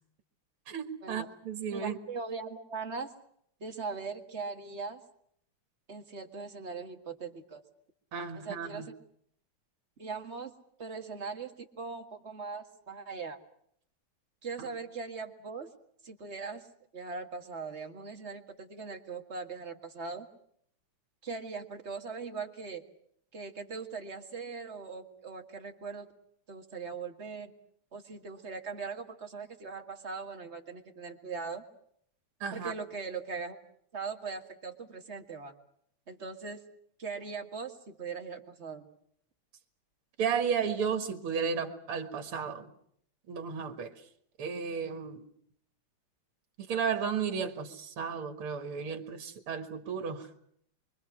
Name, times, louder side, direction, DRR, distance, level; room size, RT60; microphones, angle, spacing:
voice 1, 0.7-2.0 8.1-8.9 32.4-32.7 40.2-42.7 43.3-44.1 44.4-45.3 46.6-50.3, right 6 dB, 80° right, 2.6 m, -33 dB
voice 2, 1.7-3.1 3.6-5.0 5.9-7.6 8.4-8.9 10.0-10.5 10.8-13.4 14.4-15.7 16.0-16.7 16.9-20.3 21.2-22.9 23.3-26.1 26.5-27.5 27.9-31.6 32.5-33.6 33.9-35.5 36.1-36.6 37.0-38.9, right 4 dB, 30° right, 2.0 m, -40 dB
25.5 x 24.5 x 6.1 m
omnidirectional pair, 2.4 m